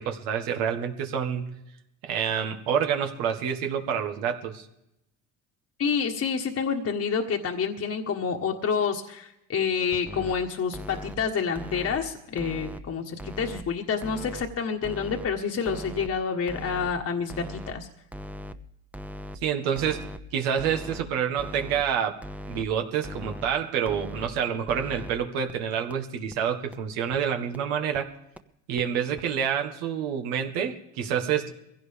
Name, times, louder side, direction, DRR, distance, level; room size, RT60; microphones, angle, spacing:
voice 1, 0.0-1.5 2.0-4.7 19.4-22.2 22.5-28.1 28.7-31.5, right 8 dB, 85° right, 5 dB, 1.8 m, -28 dB
voice 2, 5.8-17.9, left 6 dB, 45° left, 2 dB, 1.5 m, -28 dB
sound 1, 9.9-10.3 10.7-11.2 11.5-12.0 12.4-12.8 13.2-13.6 14.0-14.4 14.8-15.3 15.7-16.1 16.5-16.9 17.3-17.7 18.1-18.5 18.9-19.4 19.8-20.2 20.6-21.0 21.4-21.8 22.2-22.6 23.0-23.5 23.9-24.3 24.7-25.1 25.5-25.6 25.9-26.0 26.3-26.4 26.7-26.8 27.1-27.2 27.5-27.6 27.9-28.0 28.4-28.5 28.8-28.9 29.2-29.3, equal, 5° right, 0.9 m, -39 dB
22.5 x 16.5 x 3.5 m, 0.85 s
supercardioid pair, 80°, 35 cm